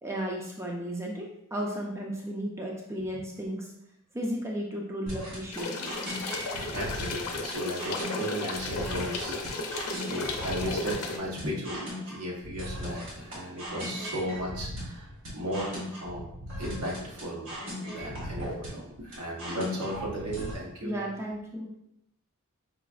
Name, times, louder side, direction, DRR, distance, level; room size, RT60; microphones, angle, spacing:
voice 1, 0.0-3.7 4.1-6.0 20.8-21.7, equal, 10° right, -1 dB, 0.4 m, -34 dB
sound 1, 5.1-20.5, equal, 60° right, 1.4 m, -38 dB
sound 2, 5.5-11.2, left 3 dB, 85° left, 0.5 m, -34 dB
voice 2, 6.7-11.8 12.1-15.1 15.3-16.2 16.6-17.6 17.8-21.0, equal, 80° right, -4 dB, 1.0 m, -35 dB
4.9 x 2.4 x 2.3 m, 0.79 s
head